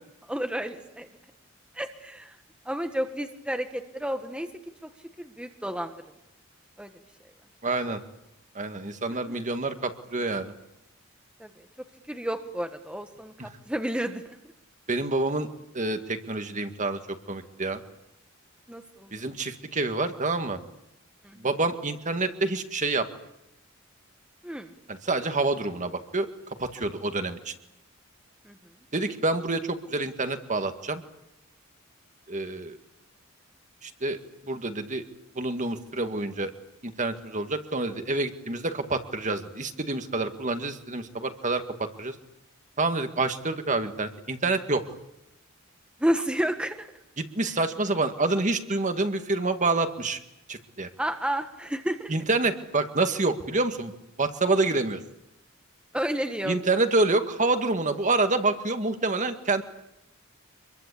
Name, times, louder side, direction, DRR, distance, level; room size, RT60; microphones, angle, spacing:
voice 1, 0.3-1.1 1.7-2.4 2.6-4.5 4.8-4.9 5.2-5.9 6.8-6.9 11.4-11.5 12.1-14.4 18.7-19.1 21.2-21.4 24.4-24.7 28.4-28.6 46.0-46.9 51.0-52.1 55.9-56.6, equal, 5° right, 6 dB, 1.5 m, -31 dB
voice 2, 7.6-8.0 8.6-10.5 13.4-13.5 14.9-15.5 15.7-17.0 17.3-17.8 19.1-20.6 21.4-23.1 24.9-26.3 26.6-27.5 28.9-31.0 32.3-32.8 33.8-34.2 34.4-35.0 35.4-36.5 36.8-42.1 42.8-44.8 47.2-50.2 50.5-50.9 52.1-53.9 54.2-55.0 56.4-59.6, right 3 dB, 35° right, 7 dB, 2.0 m, -27 dB
26.5 x 22.5 x 8.5 m, 0.83 s
head